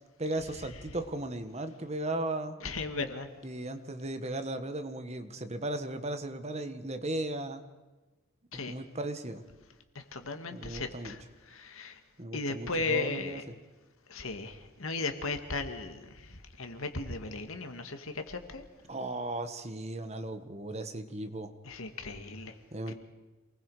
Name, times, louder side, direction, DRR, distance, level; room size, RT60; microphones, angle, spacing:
voice 1, 0.2-2.6 3.4-7.6 8.7-9.4 10.5-11.2 12.2-13.5 18.9-21.5 22.7-22.9, right 1 dB, 30° right, 9 dB, 1.4 m, -36 dB
voice 2, 2.6-3.3 8.5-8.7 10.0-11.2 11.5-12.0 12.3-13.4 14.1-18.7 21.7-22.5 22.9-23.0, left 3 dB, 80° left, 7 dB, 2.1 m, -36 dB
27.5 x 20.5 x 5.0 m, 1.2 s
head